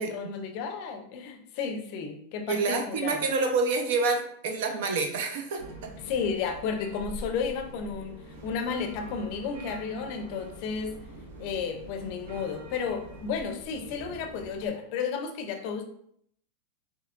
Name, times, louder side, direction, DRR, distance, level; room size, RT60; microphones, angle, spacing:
voice 1, 0.0-3.2 6.0-10.9 11.4-15.8, left 6 dB, 45° left, 5 dB, 0.6 m, -33 dB
voice 2, 2.5-5.9, right 4 dB, 60° right, 4 dB, 0.8 m, -28 dB
sound 1, 5.6-14.7, right 1 dB, 75° right, 1.1 m, -45 dB
5.4 x 3.1 x 2.5 m, 0.68 s
supercardioid pair, 165°, 0 cm